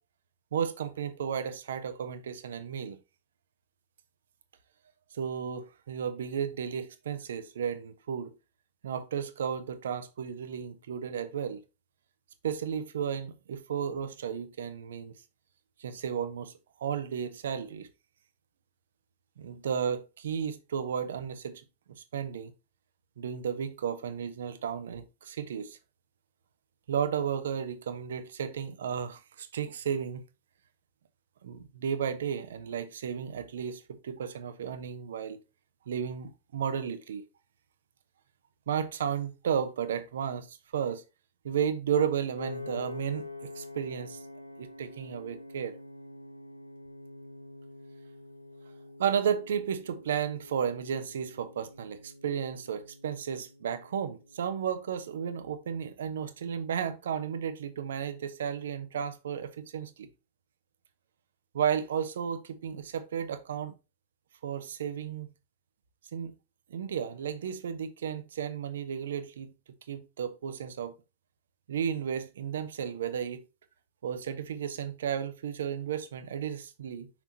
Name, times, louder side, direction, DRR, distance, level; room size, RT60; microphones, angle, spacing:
voice 1, 0.5-3.0 5.1-8.3 8.8-11.6 12.4-15.1 15.8-16.5 16.8-17.9 19.4-21.6 21.9-22.5 23.2-25.8 26.9-30.2 31.4-35.4 35.9-37.2 38.7-41.0 41.4-44.2 44.6-45.8 49.0-60.1 61.5-63.7 64.4-65.3 66.1-66.3 66.7-69.5 69.9-70.9 71.7-73.4 74.0-77.1, right 8 dB, 65° right, 0.8 m, -33 dB
Piano, 42.4-54.6, left 2 dB, 85° left, 0.5 m, -46 dB
5.9 x 5.7 x 2.8 m
figure-of-eight pair, 90°, 0 cm